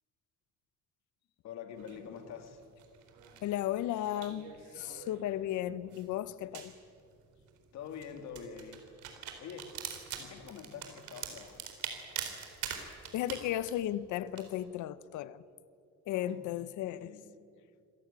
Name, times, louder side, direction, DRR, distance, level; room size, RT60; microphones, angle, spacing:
voice 1, 1.4-2.6 7.7-8.8 9.4-9.8 10.1-11.7 16.1-16.5 16.8-17.4, left 7 dB, 65° left, 2.5 m, -46 dB
sound 1, 1.8-14.6, right 8 dB, 85° right, 3.9 m, -45 dB
voice 2, 3.4-6.7 13.1-15.4 16.1-17.1, left 12 dB, 85° left, 0.9 m, -35 dB
26.0 x 17.0 x 9.0 m
cardioid pair, 145°, 29 cm